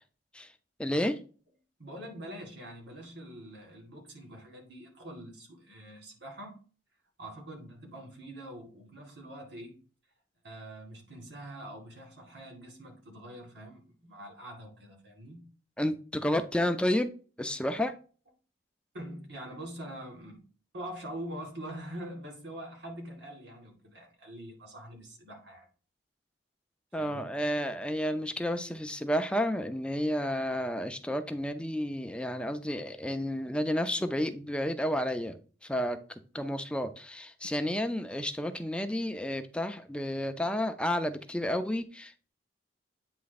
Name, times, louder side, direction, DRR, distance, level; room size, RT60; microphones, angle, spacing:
voice 1, 0.8-1.2 15.8-17.1 17.4-17.9 26.9-35.4 35.7-36.0 36.3-42.3, equal, 5° left, 0.5 m, -31 dB
voice 2, 1.8-6.6 7.2-9.8 10.4-15.4 18.9-20.5 20.7-25.7 27.0-27.2, right 1 dB, 70° right, 2.2 m, -44 dB
8.6 x 3.4 x 4.0 m
head